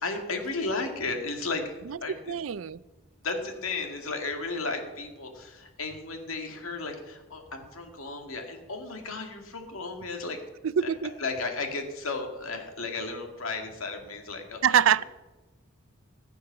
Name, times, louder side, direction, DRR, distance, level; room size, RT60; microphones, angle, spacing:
voice 1, 0.0-2.4 3.2-10.4 10.8-10.9 11.2-14.8, left 3 dB, 85° left, 2.1 m, -34 dB
voice 2, 1.9-2.8 10.6-11.1 14.6-15.0, right 8 dB, 75° right, 0.4 m, -25 dB
15.0 x 8.4 x 6.9 m
head